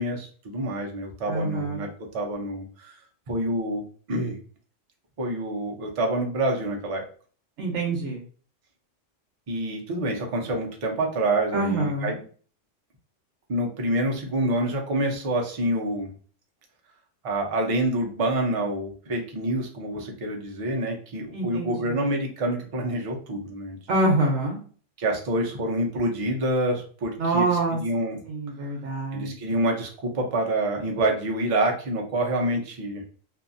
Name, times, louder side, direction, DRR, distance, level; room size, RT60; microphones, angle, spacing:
voice 1, 0.0-3.0 3.3-4.4 5.2-7.1 9.5-12.1 13.5-16.1 17.2-23.8 25.0-28.2 29.1-33.0, right 1 dB, 45° right, 1 dB, 0.4 m, -27 dB
voice 2, 1.3-1.8 7.6-8.2 11.5-12.1 21.3-22.0 23.9-24.6 27.2-27.8 28.3-29.3, right 2 dB, 70° right, -1 dB, 0.9 m, -26 dB
2.7 x 2.4 x 2.5 m, 0.42 s
omnidirectional pair, 1.3 m